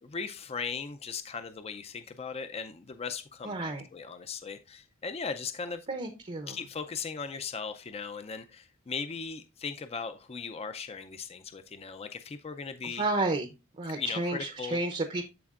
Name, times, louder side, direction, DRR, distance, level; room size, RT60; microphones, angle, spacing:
voice 1, 0.0-5.9 6.5-13.0 13.9-14.8, left 5 dB, 30° left, 0.4 m, -38 dB
voice 2, 3.4-3.8 5.9-6.6 12.8-13.5 13.8-15.2, right 2 dB, 30° right, 0.7 m, -31 dB
13.0 x 4.3 x 2.4 m
head